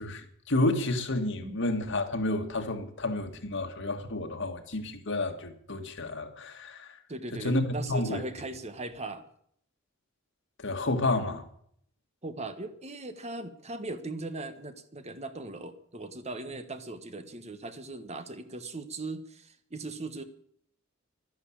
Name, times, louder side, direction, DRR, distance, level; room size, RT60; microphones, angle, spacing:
voice 1, 0.0-7.0 7.3-8.2 10.6-11.4, left 2 dB, 60° left, 2.0 m, -30 dB
voice 2, 7.1-9.2 12.2-20.2, right 2 dB, 30° right, 1.3 m, -39 dB
12.5 x 11.0 x 8.7 m
head